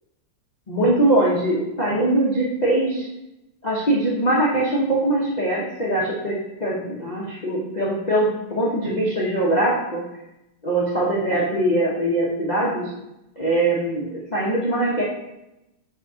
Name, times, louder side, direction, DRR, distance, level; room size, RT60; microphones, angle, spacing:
voice 1, 0.7-3.1 3.6-10.0 10.6-12.9 13.4-15.0, right 1 dB, 85° left, -5 dB, 0.3 m, -22 dB
6.0 x 3.5 x 4.8 m, 0.91 s
omnidirectional pair, 2.3 m